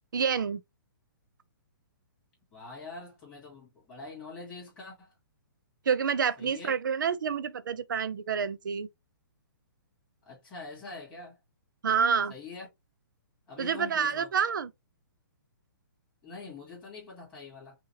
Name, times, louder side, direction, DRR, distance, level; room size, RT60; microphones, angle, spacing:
voice 1, 0.1-0.6 5.9-8.9 11.8-12.3 13.6-14.7, right 7 dB, 65° right, 0.6 m, -28 dB
voice 2, 2.5-5.2 6.4-6.7 10.2-11.4 12.3-12.7 13.5-14.3 16.2-17.8, left 3 dB, 10° left, 2.2 m, -44 dB
5.7 x 2.5 x 2.9 m
hypercardioid pair, 180°, 12 cm